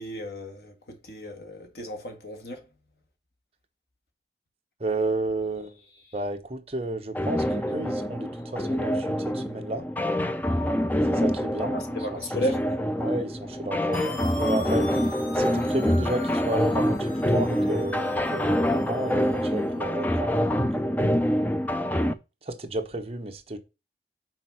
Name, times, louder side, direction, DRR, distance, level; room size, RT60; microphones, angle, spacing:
voice 1, 0.0-2.7 6.1-6.2 11.7-12.7, equal, 65° left, 1.7 m, -34 dB
voice 2, 4.8-5.8 6.1-9.8 11.1-11.8 12.1-12.2 13.0-15.0 15.3-21.0 22.4-23.6, right 2 dB, 35° right, 1.0 m, -32 dB
sound 1, 7.1-22.1, equal, 10° left, 0.4 m, -26 dB
sound 2, 13.9-19.7, left 3 dB, 50° left, 1.2 m, -42 dB
6.0 x 4.3 x 5.8 m
head